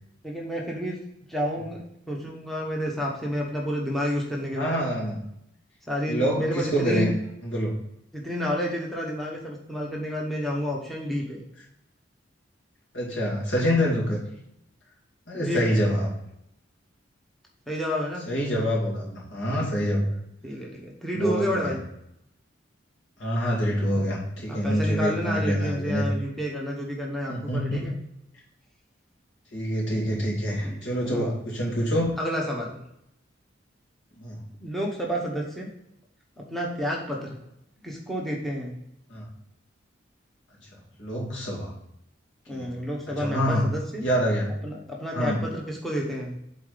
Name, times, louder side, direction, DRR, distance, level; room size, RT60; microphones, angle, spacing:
voice 1, 0.2-1.0 1.3-1.8 2.1-4.8 5.9-7.1 8.1-11.4 15.3-15.6 17.7-18.2 19.5-19.9 20.4-21.8 24.5-27.9 30.6-31.3 32.2-32.8 34.6-35.7 36.5-37.4 37.8-38.7 42.5-44.0 44.6-46.4, equal, ahead, -2 dB, 1.1 m, -30 dB
voice 2, 4.5-5.3 6.1-7.1 7.4-7.8 12.9-14.2 15.3-16.1 18.3-20.1 21.1-21.7 23.2-26.1 27.3-27.9 29.5-32.2 34.2-34.4 39.1-39.3 41.0-41.7 42.5-42.8 43.2-43.7 44.0-44.5 45.1-45.5, equal, 80° left, -3 dB, 2.4 m, -26 dB
8.4 x 4.1 x 3.9 m, 0.79 s
head